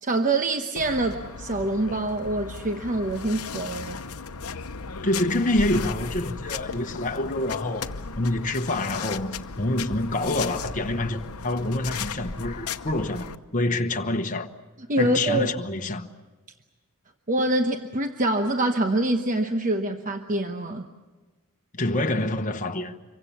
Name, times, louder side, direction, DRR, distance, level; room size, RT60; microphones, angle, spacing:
voice 1, 0.0-4.0 14.9-15.5 17.3-20.9, right 2 dB, 35° right, 1.0 m, -25 dB
sound 1, 0.8-13.4, left 5 dB, 70° left, 0.9 m, -36 dB
voice 2, 5.0-7.9 8.2-13.3 13.5-14.5 15.0-16.1 21.7-22.9, left 2 dB, 35° left, 1.1 m, -26 dB
26.5 x 23.5 x 7.2 m
head